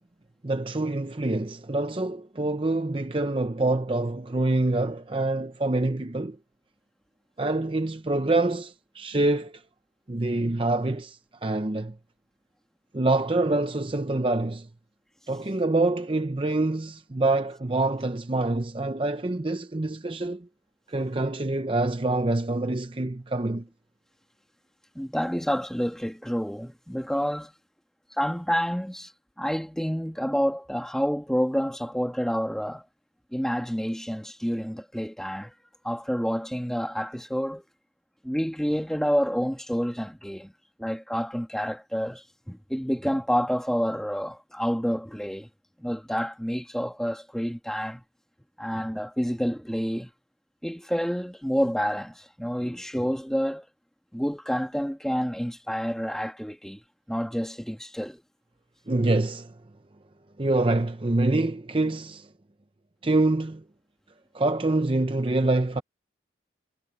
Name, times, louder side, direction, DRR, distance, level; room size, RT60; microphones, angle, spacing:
voice 1, 0.4-6.4 7.4-9.6 10.1-12.0 12.9-14.7 15.3-20.5 20.9-23.7 58.9-59.6 60.4-62.3 63.0-63.6 64.3-65.8, right 2 dB, 30° right, 0.7 m, -26 dB
voice 2, 25.0-27.5 28.1-29.1 29.4-32.9 33.3-35.5 35.8-37.6 38.2-40.5 40.8-45.5 45.8-48.0 48.6-50.1 50.6-53.7 54.1-56.8 57.1-58.2, equal, 5° left, 1.9 m, -28 dB
head